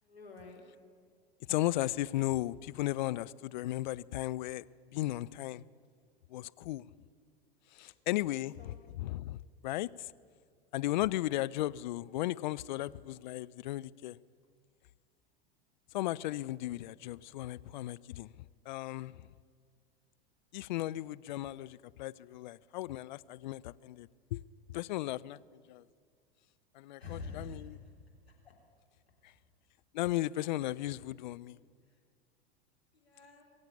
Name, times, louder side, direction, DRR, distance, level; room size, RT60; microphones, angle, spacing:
voice 1, 0.0-0.6 7.8-8.0 8.3-8.8 27.0-27.9 28.4-28.5 32.9-33.4, left 4 dB, 90° left, -2 dB, 3.6 m, -47 dB
voice 2, 1.5-4.6 4.9-5.6 6.3-6.8 7.8-9.4 9.6-9.9 10.7-14.2 15.9-18.3 18.7-19.3 20.5-24.4 24.7-25.4 25.7-25.8 26.8-27.8 29.9-31.6, left 16 dB, 50° left, 17 dB, 0.4 m, -35 dB
21.5 x 8.0 x 8.4 m, 2.1 s
figure-of-eight pair, 95°, 30 cm